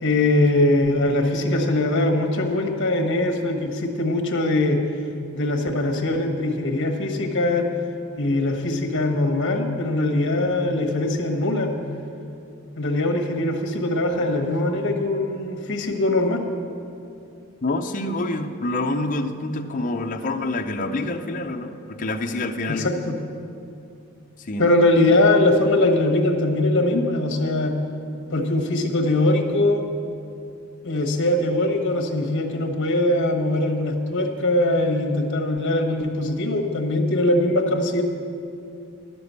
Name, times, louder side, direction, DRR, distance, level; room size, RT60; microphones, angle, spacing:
voice 1, 0.0-4.8 5.3-7.7 8.2-11.7 12.8-16.4 22.7-23.2 24.6-27.8 28.3-29.8 30.8-38.0, left 2 dB, 60° left, 4 dB, 1.3 m, -21 dB
voice 2, 17.6-22.9 24.5-24.7, left 2 dB, 40° left, 4 dB, 0.6 m, -27 dB
11.0 x 6.9 x 8.1 m, 2.6 s
head